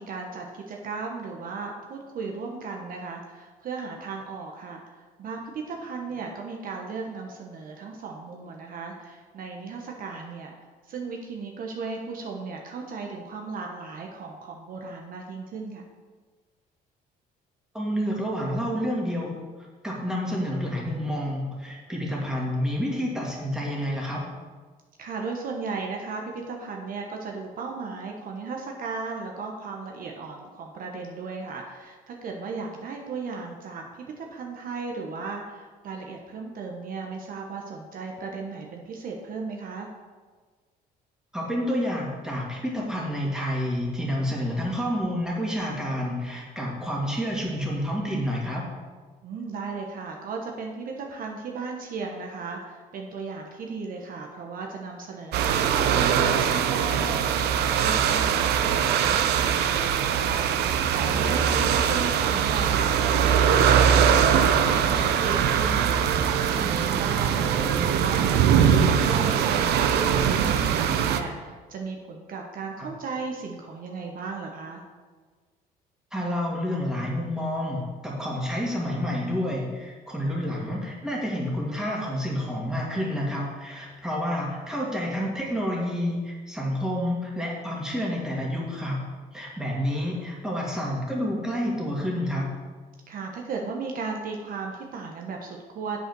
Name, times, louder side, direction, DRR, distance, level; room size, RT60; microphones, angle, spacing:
voice 1, 0.0-10.6 10.9-15.8 25.0-39.9 49.2-74.8 93.1-96.0, right 4 dB, 55° right, 1 dB, 1.1 m, -36 dB
voice 2, 17.7-19.3 19.8-24.2 41.3-48.6 72.8-72.9 76.1-89.0 89.3-92.5, equal, 5° right, -4 dB, 2.3 m, -29 dB
sound 1, 55.3-71.2, right 8 dB, 75° right, 0.6 m, -22 dB
7.6 x 5.6 x 6.2 m, 1.4 s
cardioid pair, 110°, 17 cm